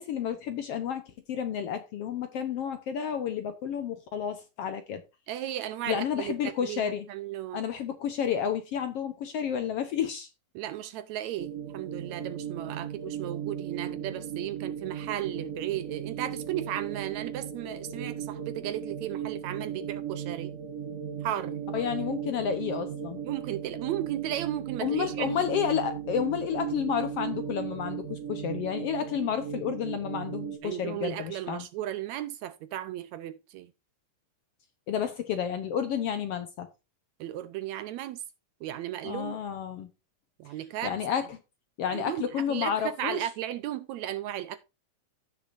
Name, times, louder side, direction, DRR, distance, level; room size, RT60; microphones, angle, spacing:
voice 1, 0.0-5.0 5.9-7.1 7.5-10.3 21.7-23.2 24.8-31.6 34.9-36.7 39.0-39.9 40.8-41.4 41.8-43.3, left 8 dB, 65° left, 1.6 m, -31 dB
voice 2, 5.3-7.6 10.5-20.5 21.2-21.7 23.2-25.4 30.6-33.7 37.2-38.2 38.6-39.4 40.4-41.0 41.9-44.6, right 12 dB, 75° right, 1.8 m, -35 dB
sound 1, 11.4-30.6, right 8 dB, 60° right, 0.8 m, -37 dB
15.5 x 6.5 x 2.5 m
omnidirectional pair, 3.6 m